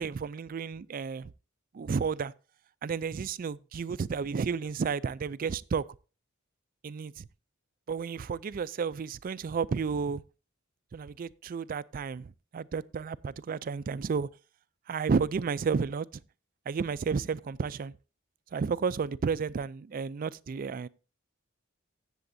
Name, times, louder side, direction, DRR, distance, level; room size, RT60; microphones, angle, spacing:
voice 1, 0.0-1.3 1.7-2.3 2.8-5.8 6.8-7.3 7.9-10.2 10.9-14.3 14.9-16.1 16.7-17.9 18.5-20.9, right 5 dB, 40° right, 0.3 m, -32 dB
16.0 x 7.0 x 2.7 m
head